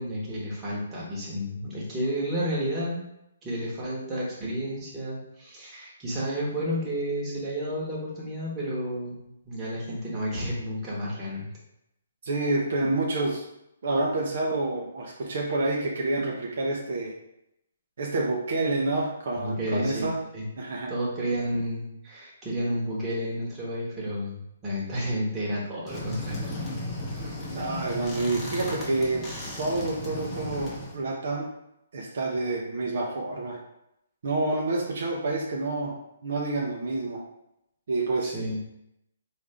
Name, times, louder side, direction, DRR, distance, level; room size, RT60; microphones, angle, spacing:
voice 1, 0.0-3.0 3.4-11.5 19.3-20.1 20.3-20.5 20.9-26.4 38.2-38.6, equal, 20° right, -6 dB, 1.3 m, -31 dB
voice 2, 12.2-13.4 13.8-17.1 18.0-20.2 20.6-20.9 27.5-29.2 29.6-31.5 31.9-33.6 34.2-36.0 36.2-37.2 37.9-38.3, right 2 dB, 60° right, -2 dB, 0.7 m, -28 dB
sound 1, 25.9-31.0, left 1 dB, 15° left, 0.9 m, -35 dB
3.6 x 2.6 x 3.4 m, 0.82 s
hypercardioid pair, 145°, 0 cm